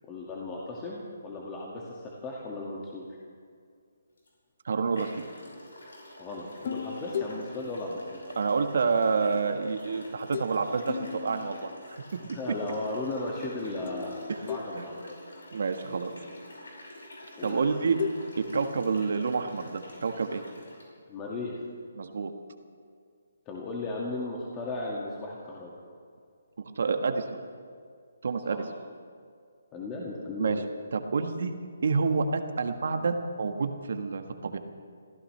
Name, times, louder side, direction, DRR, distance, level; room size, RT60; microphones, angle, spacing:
voice 1, 0.0-3.0 6.2-8.2 12.3-15.2 17.4-17.8 21.1-21.5 23.5-25.7 28.5-28.6 29.7-30.6, left 2 dB, 20° left, -3 dB, 2.1 m, -36 dB
sound 1, 4.2-4.3 4.9-20.9, left 1 dB, 80° left, 5.5 m, -48 dB
voice 2, 4.6-5.2 8.4-11.7 14.3-14.4 14.7-14.8 15.5-16.1 17.4-18.0 18.4-20.4 22.0-22.3 26.8-27.2 28.2-28.6 30.4-30.6 30.9-31.5 31.8-34.6, right 4 dB, 60° right, 7 dB, 1.5 m, -28 dB
sound 2, 6.6-9.0 10.3-10.6 10.9-12.2 13.9-15.6 17.5-19.8, left 6 dB, 45° left, 1.0 m, -39 dB
27.5 x 15.0 x 3.4 m, 2.2 s
figure-of-eight pair, 145°, 0 cm